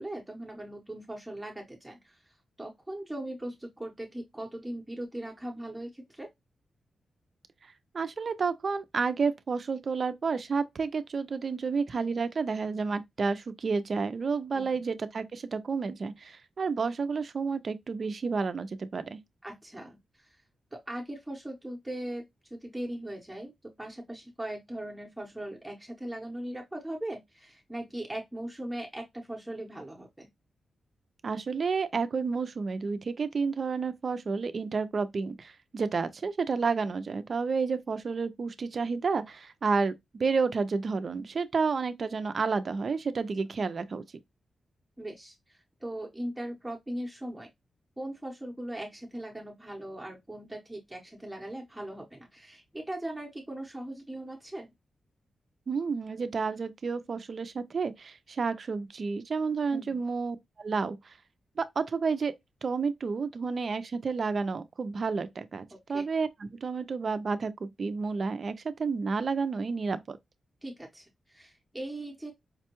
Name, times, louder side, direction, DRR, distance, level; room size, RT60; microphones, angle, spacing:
voice 1, 0.0-2.2 2.6-6.3 14.5-14.7 19.4-20.4 20.7-22.2 22.5-30.3 45.0-47.5 48.0-54.7 59.7-60.0 65.7-66.0 70.6-72.3, right 1 dB, 5° right, 0.7 m, -39 dB
voice 2, 7.6-19.2 31.2-44.0 55.7-61.1 61.6-62.3 62.6-66.3 66.6-70.2, right 4 dB, 40° right, 0.4 m, -30 dB
5.1 x 2.2 x 2.8 m
wide cardioid pair, 170°, 0 cm